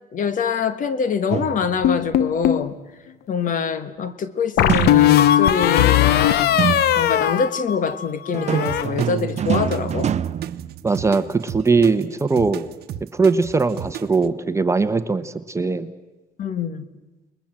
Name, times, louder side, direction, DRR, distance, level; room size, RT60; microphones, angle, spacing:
voice 1, 0.1-2.8 3.3-6.6 6.9-10.1 16.4-16.8, left 6 dB, 50° left, 12 dB, 1.6 m, -24 dB
sound 1, 1.3-2.0 4.7-5.5 6.6-7.3 8.3-11.3, right 8 dB, 40° right, 0.8 m, -25 dB
sound 2, 1.8-2.7 4.6-8.1 8.4-8.8, left 11 dB, 70° left, 0.9 m, -18 dB
sound 3, 8.6-14.3, right 11 dB, 70° right, 1.1 m, -34 dB
voice 2, 10.8-12.6 13.1-15.9, right 4 dB, 15° right, 10 dB, 1.2 m, -20 dB
29.0 x 21.0 x 7.6 m, 1.1 s
cardioid pair, 110°, 17 cm